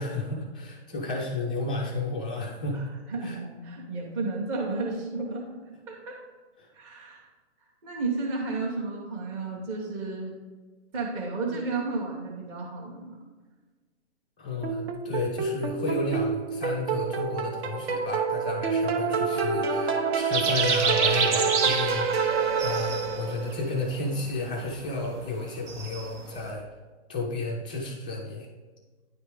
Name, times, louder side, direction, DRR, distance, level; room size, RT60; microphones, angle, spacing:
voice 1, 0.0-2.9 3.2-3.4 6.6-6.7 14.4-22.1 22.6-26.6 27.1-28.5, left 2 dB, 10° left, -6 dB, 0.3 m, -32 dB
voice 2, 2.7-5.6 5.9-6.2 6.7-7.3 7.8-10.3 10.9-13.2, right 3 dB, 25° right, -4 dB, 0.9 m, -32 dB
sound 1, 14.6-23.5, right 5 dB, 60° right, 1.0 m, -28 dB
sound 2, 20.3-26.5, right 5 dB, 80° right, 1.1 m, -29 dB
9.8 x 3.6 x 4.8 m, 1.3 s
hypercardioid pair, 155°, 35 cm